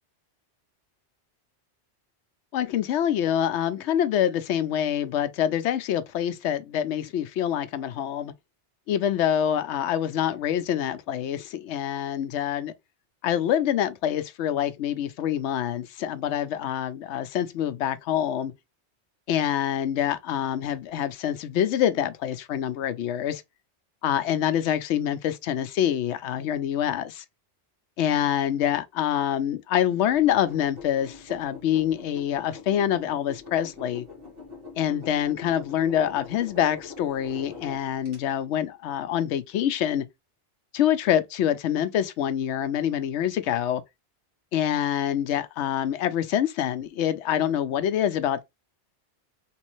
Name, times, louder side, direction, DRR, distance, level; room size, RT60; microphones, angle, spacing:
voice 1, 2.5-8.3 8.9-12.7 13.2-18.5 19.3-23.4 24.0-27.2 28.0-34.1 34.8-40.1 40.7-43.8 44.5-48.4, left 10 dB, 75° left, 0.9 m, -26 dB
sound 1, 30.1-38.2, left 5 dB, 55° right, 1.7 m, -43 dB
3.2 x 3.1 x 3.0 m
omnidirectional pair, 1.2 m